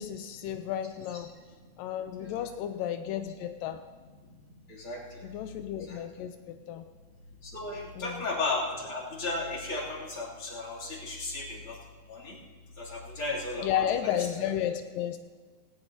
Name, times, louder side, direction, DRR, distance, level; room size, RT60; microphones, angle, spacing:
voice 1, 0.0-1.3 1.8-3.8 5.2-6.9 7.9-8.2 13.6-15.2, left 10 dB, 80° left, 9 dB, 2.1 m, -33 dB
voice 2, 4.7-5.2 5.9-6.0 7.4-11.8 12.1-12.4 12.8-14.2, left 2 dB, 35° left, -3 dB, 3.3 m, -35 dB
18.5 x 18.0 x 2.8 m, 1.4 s
omnidirectional pair, 4.3 m